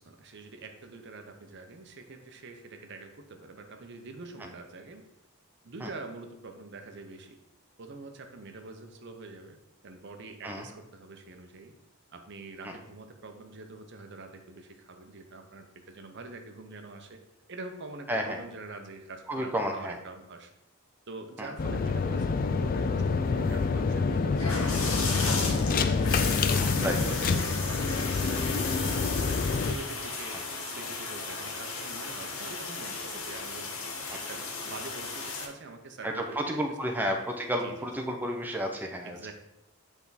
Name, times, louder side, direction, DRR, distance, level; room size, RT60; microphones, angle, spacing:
voice 1, 0.0-5.0 5.6-7.4 7.8-9.6 9.8-11.7 12.1-17.2 17.5-20.5 21.1-25.8 26.5-30.4 30.7-33.7 34.1-36.6 36.9-37.1 37.6-37.9 39.0-39.3, right 3 dB, 55° right, 5 dB, 0.7 m, -45 dB
voice 2, 18.1-18.4 19.3-20.0 21.4-21.5 26.8-27.0 34.1-34.2 36.0-39.3, equal, 10° right, 1 dB, 0.6 m, -31 dB
sound 1, 21.6-29.7, left 4 dB, 45° left, 0.4 m, -27 dB
sound 2, 24.3-35.5, left 4 dB, 80° left, 1.1 m, -35 dB
8.1 x 3.5 x 4.0 m, 0.86 s
head